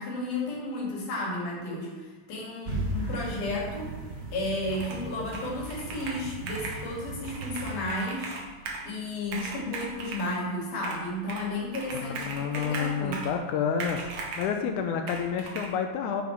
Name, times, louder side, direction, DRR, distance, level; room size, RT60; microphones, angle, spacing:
voice 1, 0.0-3.9 4.3-8.4 8.8-13.3, left 1 dB, 65° left, -4 dB, 3.6 m, -33 dB
sound 1, 2.6-7.8, right 2 dB, 85° right, 0.6 m, -37 dB
Computer keyboard, 4.7-5.1 5.3-6.8 7.2-8.9 9.2-10.3 10.8-11.5 11.7-13.4 13.8-14.5 15.1-15.7, right 3 dB, 65° right, 2.4 m, -38 dB
voice 2, 12.0-14.0 14.4-16.2, left 7 dB, 80° left, 5 dB, 1.8 m, -29 dB
9.5 x 5.4 x 4.6 m, 1.4 s
omnidirectional pair, 4.1 m